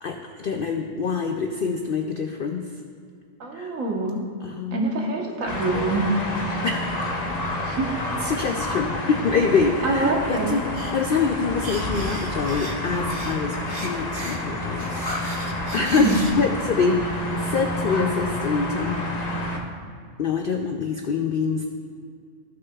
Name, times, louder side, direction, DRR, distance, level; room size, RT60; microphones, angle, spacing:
voice 1, 0.0-2.6 3.5-3.7 4.4-4.8 6.6-6.9 8.2-19.4 20.2-21.7, left 5 dB, 70° left, 4 dB, 0.5 m, -25 dB
voice 2, 3.4-4.2 4.7-6.1 7.6-7.9 9.8-10.6 15.8-16.3, right 3 dB, 70° right, 0 dB, 1.6 m, -25 dB
sound 1, 5.5-19.6, left 1 dB, 35° left, 0.8 m, -29 dB
sound 2, 10.7-11.0 11.4-13.3 13.7-16.3, right 2 dB, 30° right, 0.7 m, -37 dB
15.0 x 6.4 x 2.3 m, 2.3 s
omnidirectional pair, 1.5 m